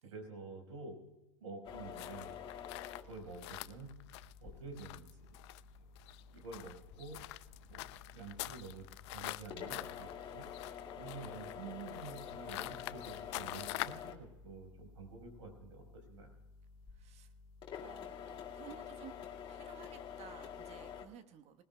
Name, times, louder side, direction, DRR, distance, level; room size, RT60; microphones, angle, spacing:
voice 1, 0.0-1.0 1.4-2.3 3.0-3.9 4.4-5.3 5.8-6.0 6.3-7.2 7.7-10.5 10.9-16.3, right 4 dB, 80° right, 3 dB, 4.8 m, -49 dB
sound 1, 1.6-21.0, left 8 dB, 35° left, 2.0 m, -49 dB
sound 2, 1.9-14.1, left 19 dB, 60° left, 0.5 m, -46 dB
voice 2, 16.9-17.3 17.8-19.1 19.5-21.6, right 8 dB, 45° right, 9 dB, 1.3 m, -55 dB
20.0 x 20.0 x 2.3 m, 1.0 s
hypercardioid pair, 100°, 16 cm